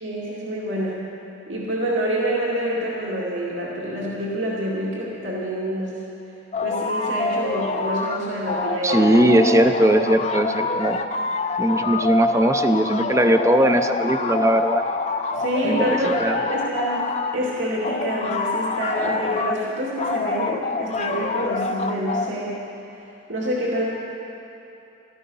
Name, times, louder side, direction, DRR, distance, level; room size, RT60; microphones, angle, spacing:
voice 1, 0.0-1.0 1.5-6.0 6.6-9.3 15.3-22.6 23.3-23.8, equal, 75° right, -5 dB, 2.3 m, -27 dB
sound 1, 6.5-8.2 8.5-17.4 17.8-19.6 20.0-22.3, left 3 dB, 35° left, 0.5 m, -26 dB
voice 2, 8.8-11.0 11.6-14.8 15.6-16.4, right 1 dB, 15° right, 8 dB, 0.5 m, -19 dB
16.5 x 13.5 x 5.5 m, 2.8 s
head